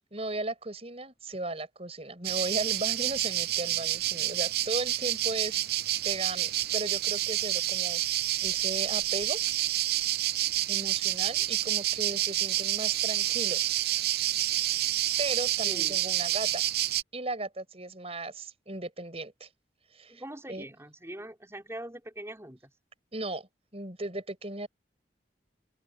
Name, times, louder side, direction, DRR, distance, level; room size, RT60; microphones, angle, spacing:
voice 1, 0.1-5.6 6.0-8.0 8.4-9.4 10.7-13.7 15.2-16.6 17.1-19.5 19.9-20.2 20.5-20.7 23.1-24.7, right 2 dB, 35° right, 6.7 m, -36 dB
sound 1, 2.2-17.0, right 13 dB, 60° right, 0.6 m, -28 dB
voice 2, 15.6-16.0 20.1-22.7, right 1 dB, 15° right, 4.8 m, -42 dB
open air
head